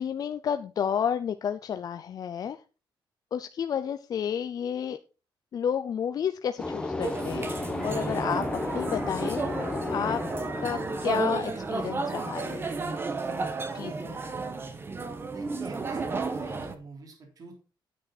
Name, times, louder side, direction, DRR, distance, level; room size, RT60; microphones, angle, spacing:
voice 1, 0.0-2.6 3.3-5.0 5.5-7.5 7.8-9.5 9.9-10.2 10.6-12.6 13.7-14.3, left 8 dB, 45° left, 9 dB, 0.6 m, -31 dB
sound 1, 6.6-12.3, left 2 dB, 10° left, 1.4 m, -34 dB
sound 2, 7.0-16.8, right 4 dB, 25° right, 1.3 m, -33 dB
voice 2, 15.3-17.5, right 3 dB, 45° right, 2 dB, 3.6 m, -46 dB
9.7 x 8.4 x 4.1 m, 0.33 s
cardioid pair, 145°, 9 cm